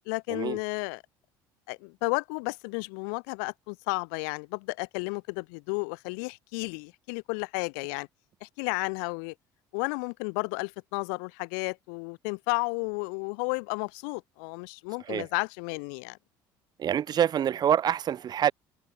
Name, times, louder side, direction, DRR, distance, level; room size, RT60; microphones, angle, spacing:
voice 1, 0.1-1.0 1.7-8.1 8.4-9.3 9.7-16.2, left 40 dB or more, 70° left, 0.4 m, -32 dB
voice 2, 16.8-18.5, right 9 dB, 40° right, 0.5 m, -26 dB
hypercardioid pair, 60°, 11 cm